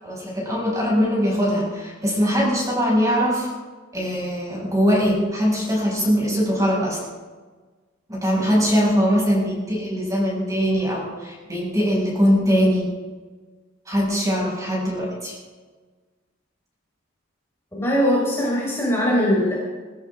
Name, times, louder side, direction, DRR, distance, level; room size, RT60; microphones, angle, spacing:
voice 1, 0.0-3.5 3.9-7.0 8.1-12.9 13.9-15.3, equal, 15° right, -4 dB, 6.3 m, -21 dB
voice 2, 17.7-19.5, equal, 15° left, -5 dB, 4.6 m, -21 dB
23.0 x 14.0 x 3.7 m, 1.3 s
head